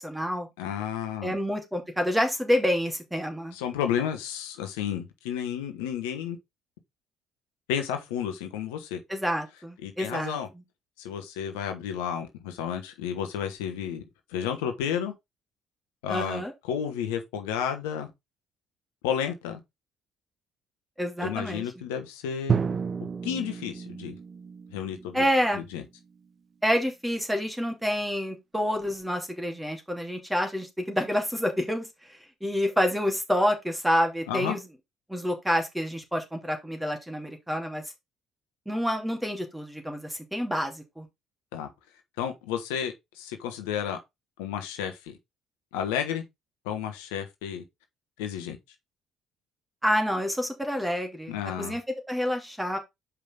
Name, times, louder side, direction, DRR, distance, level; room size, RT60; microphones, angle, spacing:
voice 1, 0.0-0.5 1.2-3.5 9.1-10.4 16.1-16.5 21.0-21.6 25.1-25.7 26.6-34.6 35.1-37.8 38.7-41.1 49.8-51.8 52.1-52.8, equal, 5° right, 2.6 m, -28 dB
voice 2, 0.6-1.4 3.5-6.4 7.7-9.0 9.8-10.5 11.0-14.0 14.3-15.1 16.0-18.1 19.0-19.6 21.2-22.6 23.2-24.2 24.7-25.3 25.5-25.8 34.3-34.5 41.5-41.7 42.2-44.0 44.4-45.1 45.7-46.2 46.6-47.6 48.2-48.6 51.3-51.8, left 8 dB, 75° left, 1.2 m, -31 dB
Drum, 22.5-26.3, right 6 dB, 40° right, 0.7 m, -32 dB
7.3 x 5.2 x 3.8 m
hypercardioid pair, 55°, 0 cm